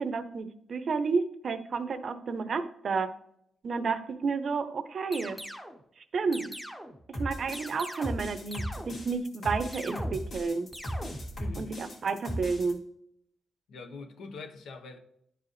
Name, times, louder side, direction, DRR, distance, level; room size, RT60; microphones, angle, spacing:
voice 1, 0.0-3.1 3.6-5.4 6.1-6.5 7.1-10.7 11.6-12.8, right 4 dB, 50° right, 0.7 m, -31 dB
sound 1, 5.1-5.8 6.3-7.0 7.5-8.3 8.5-9.2 9.7-10.4 10.7-11.4, equal, ahead, 0.8 m, -41 dB
sound 2, 7.1-12.7, equal, 50° left, 2.0 m, -37 dB
voice 2, 11.3-11.7 13.7-15.0, left 4 dB, 75° left, 1.0 m, -43 dB
11.0 x 4.9 x 3.1 m
cardioid pair, 130°, 0 cm